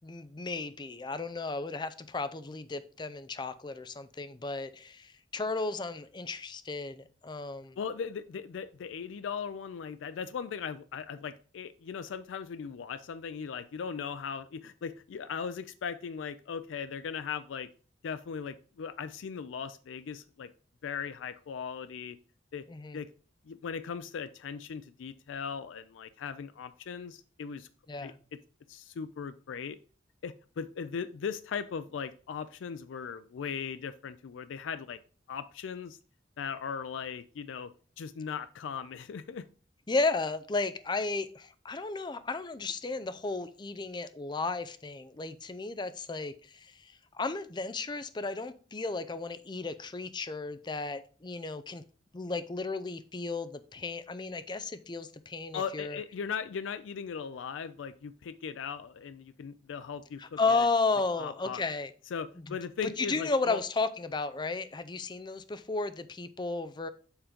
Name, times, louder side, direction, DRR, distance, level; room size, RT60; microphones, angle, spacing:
voice 1, 0.0-7.8 22.7-23.0 27.9-28.2 39.9-51.8 52.1-56.0 60.2-61.9 62.5-62.6 62.8-66.9, left 3 dB, 25° left, 12 dB, 0.5 m, -34 dB
voice 2, 7.8-17.7 18.0-20.5 20.8-22.2 22.5-22.6 22.9-23.1 23.5-27.7 28.0-28.1 28.7-29.8 30.2-35.0 35.3-36.0 36.4-37.7 38.0-39.4 55.5-60.7 61.2-61.6 62.1-63.6, left 6 dB, 90° left, 12 dB, 0.4 m, -38 dB
7.1 x 3.7 x 5.1 m, 0.39 s
head